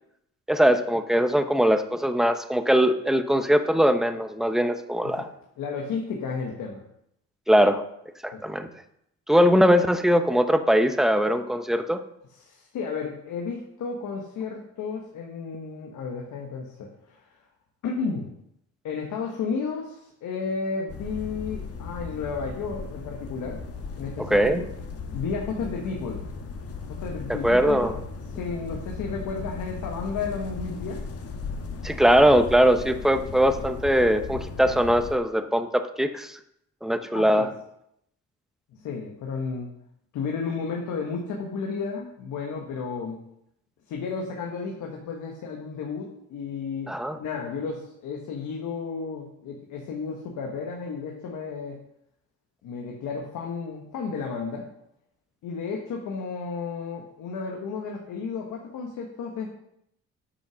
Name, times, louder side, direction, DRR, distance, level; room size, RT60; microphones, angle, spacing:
voice 1, 0.5-5.2 7.5-7.8 8.2-8.7 9.3-12.0 24.3-24.6 27.4-27.9 31.8-36.4 36.8-37.5 46.9-47.2, equal, ahead, 9 dB, 0.8 m, -21 dB
voice 2, 5.6-6.8 8.3-8.7 12.3-17.4 17.8-18.3 18.8-23.6 23.9-24.7 25.1-26.3 26.9-28.0 28.3-31.0 37.1-37.5 38.7-39.7 40.1-43.2 43.9-51.8 52.6-54.7 55.4-59.5, left 5 dB, 80° left, 1 dB, 1.4 m, -33 dB
sound 1, 20.9-35.2, left 4 dB, 50° left, 1.3 m, -37 dB
8.6 x 5.7 x 6.2 m, 0.77 s
cardioid pair, 90°, 30 cm